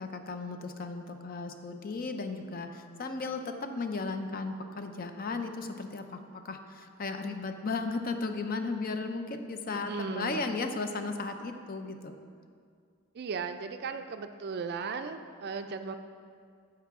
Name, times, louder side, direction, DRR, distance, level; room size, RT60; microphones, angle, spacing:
voice 1, 0.0-12.1, left 3 dB, 40° left, 7 dB, 0.5 m, -35 dB
voice 2, 9.7-10.4 13.1-16.0, right 5 dB, 45° right, 8 dB, 0.4 m, -36 dB
14.0 x 4.7 x 3.6 m, 2.2 s
head